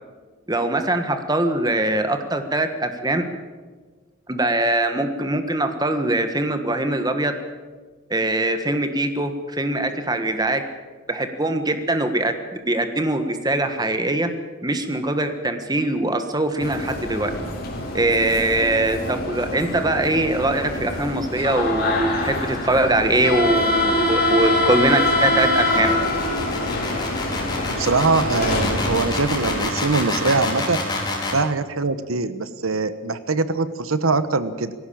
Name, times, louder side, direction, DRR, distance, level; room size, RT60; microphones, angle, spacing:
voice 1, 0.5-3.2 4.3-7.3 8.1-10.6 11.1-12.3 12.7-14.3 14.6-17.3 17.9-25.9, right 2 dB, 20° right, 8 dB, 1.4 m, -22 dB
sound 1, 16.6-29.7, left 1 dB, 45° left, 4.1 m, -24 dB
sound 2, 22.2-31.4, left 3 dB, 20° left, 4.9 m, -29 dB
voice 2, 27.7-30.8 31.3-34.7, right 3 dB, 80° right, 12 dB, 1.1 m, -22 dB
19.0 x 16.5 x 8.7 m, 1.4 s
head